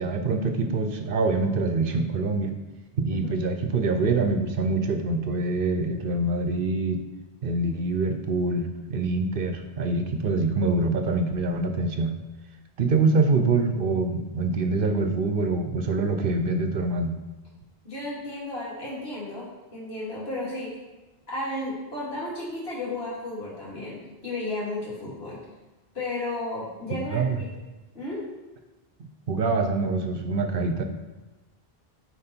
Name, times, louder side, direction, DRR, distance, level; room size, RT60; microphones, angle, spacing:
voice 1, 0.0-2.5 3.0-7.0 7.4-12.1 12.8-17.1 26.9-27.4 29.0-30.8, right 3 dB, 65° right, 6 dB, 0.9 m, -25 dB
voice 2, 3.1-3.4 17.8-20.7 21.3-25.4 25.9-27.4 27.9-28.2, left 2 dB, 75° left, -8 dB, 3.1 m, -33 dB
8.9 x 4.6 x 4.4 m, 1.2 s
omnidirectional pair, 1.0 m